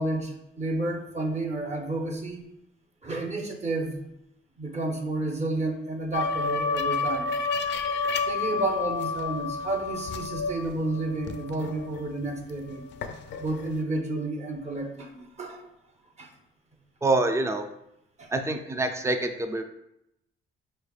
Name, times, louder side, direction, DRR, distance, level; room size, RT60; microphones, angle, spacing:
voice 1, 0.0-2.4 3.0-4.0 4.6-7.3 8.2-12.9 13.4-15.7 16.2-16.3 18.2-18.3, right 2 dB, 35° right, 1 dB, 0.9 m, -31 dB
sound 1, 6.1-12.4 12.7-13.7, left 4 dB, 65° left, 0.4 m, -30 dB
voice 2, 17.0-17.7 18.3-19.6, right 2 dB, 15° right, 6 dB, 0.4 m, -26 dB
5.1 x 3.2 x 2.4 m, 0.81 s
cardioid pair, 90°, 20 cm